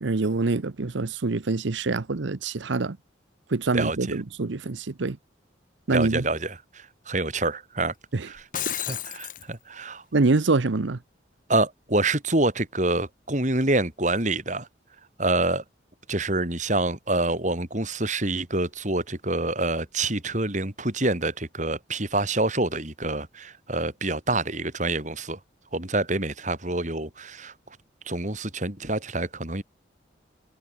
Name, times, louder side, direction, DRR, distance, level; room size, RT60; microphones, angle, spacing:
voice 1, 0.0-3.0 3.5-5.2 5.9-6.2 8.1-8.3 10.1-11.0, right 3 dB, 80° right, 0.8 m, -25 dB
voice 2, 5.9-7.9 8.3-8.4 8.7-10.0 11.5-14.7 15.2-15.6 16.1-25.4 25.7-27.5 28.1-29.6, right 2 dB, 40° right, 3.8 m, -27 dB
Shatter, 8.3-9.4, left 11 dB, 45° left, 1.7 m, -31 dB
head